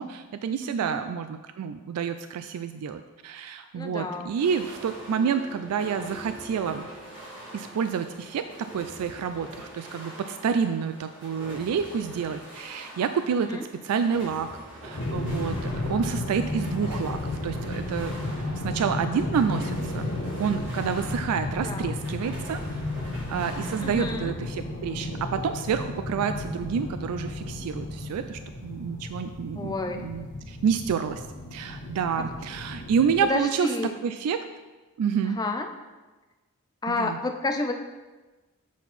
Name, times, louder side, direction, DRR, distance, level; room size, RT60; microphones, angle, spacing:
voice 1, 0.0-6.9 7.5-8.4 8.7-13.6 13.8-14.5 14.8-18.2 18.5-20.0 20.4-22.6 23.3-29.7 30.0-31.2 31.5-33.7 34.0-34.4 35.0-35.4 36.9-37.2, right 7 dB, 85° right, 10 dB, 0.3 m, -28 dB
voice 2, 0.6-1.0 3.7-4.3 13.5-13.7 21.6-22.0 23.8-24.3 29.6-30.1 33.3-33.9 35.3-35.7 36.8-37.7, left 2 dB, 15° left, 5 dB, 0.4 m, -30 dB
sound 1, 4.4-24.2, right 1 dB, 55° right, 1.8 m, -43 dB
sound 2, 14.9-33.2, left 1 dB, 50° left, 0.7 m, -33 dB
7.1 x 4.4 x 4.1 m, 1.2 s
head